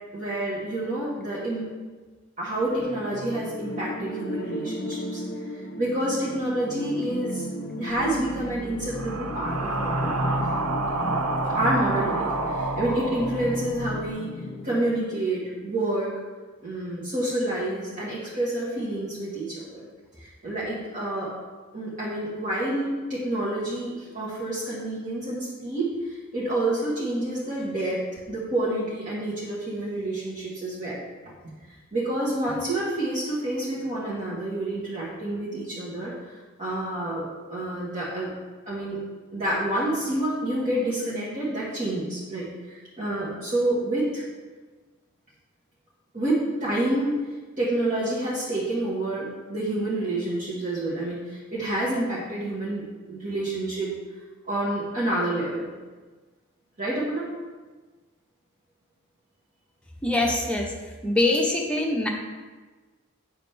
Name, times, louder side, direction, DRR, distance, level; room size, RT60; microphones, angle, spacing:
voice 1, 0.1-1.7 2.4-5.2 5.5-7.4 7.8-10.3 11.5-14.3 14.6-16.1 16.6-19.8 20.2-21.3 21.7-28.0 28.3-31.0 31.9-36.1 36.6-38.3 38.6-39.0 39.3-44.2 46.1-47.2 47.6-52.8 53.1-53.9 54.4-55.7 56.8-57.3, right 1 dB, 35° right, -9 dB, 1.6 m, -28 dB
sound 1, 2.8-14.8, equal, 45° left, 0.6 m, -33 dB
sound 2, 7.9-14.0, right 3 dB, 90° right, 1.0 m, -30 dB
voice 2, 60.0-60.7 61.0-62.1, left 2 dB, 5° left, -1 dB, 0.9 m, -23 dB
9.1 x 6.5 x 3.4 m, 1.3 s
head